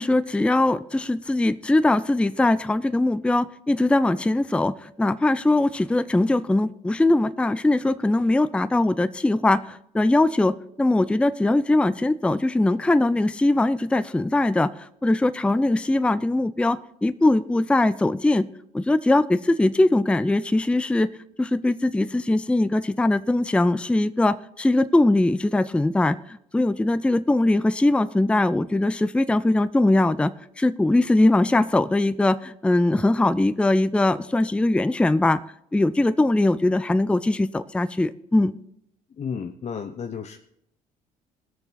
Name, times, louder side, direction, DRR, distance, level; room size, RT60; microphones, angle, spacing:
voice 1, 0.0-18.5 18.7-21.1 21.4-35.4 35.7-38.5, left 2 dB, 5° left, 14 dB, 0.5 m, -21 dB
voice 2, 39.2-40.4, left 6 dB, 35° left, 6 dB, 0.8 m, -32 dB
18.5 x 6.7 x 4.2 m, 0.75 s
hypercardioid pair, 55°, 19 cm